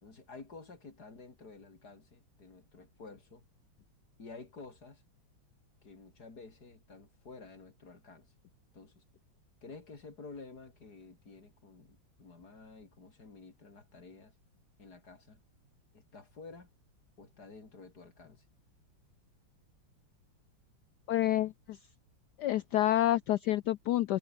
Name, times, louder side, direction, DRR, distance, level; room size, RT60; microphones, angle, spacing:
voice 1, 0.0-3.4 4.2-5.0 5.8-8.3 8.7-9.0 9.6-14.3 14.8-15.4 15.9-16.7 17.2-18.5, left 4 dB, 50° left, 4.5 m, -51 dB
voice 2, 21.1-21.8 22.4-24.2, left 13 dB, 70° left, 1.0 m, -28 dB
omnidirectional pair, 2.2 m